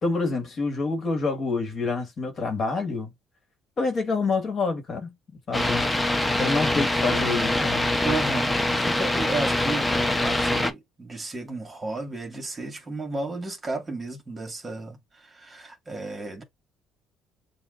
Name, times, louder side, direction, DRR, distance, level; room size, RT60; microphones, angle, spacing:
voice 1, 0.0-3.1 3.8-5.1 5.5-5.8 6.4-7.8, left 3 dB, 40° left, 1.5 m, -27 dB
sound 1, 5.5-10.7, left 1 dB, 10° left, 0.7 m, -24 dB
voice 2, 8.0-16.4, right 3 dB, 25° right, 2.0 m, -33 dB
7.3 x 2.4 x 2.4 m
cardioid pair, 100°, 0 cm